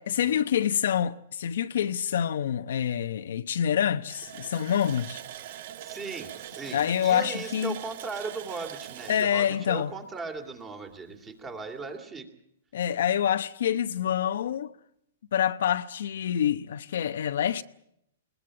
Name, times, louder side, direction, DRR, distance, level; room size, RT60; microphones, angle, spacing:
voice 1, 0.0-5.2 6.7-7.8 9.1-9.9 12.7-14.7 15.3-17.6, left 9 dB, 70° left, 0.9 m, -26 dB
Water tap faucet, 4.1-10.6 10.9-11.0 11.5-11.6, right 11 dB, 50° right, 1.0 m, -42 dB
voice 2, 5.8-12.3, right 4 dB, 15° right, 2.6 m, -38 dB
20.5 x 20.0 x 8.7 m
hypercardioid pair, 155°, 0 cm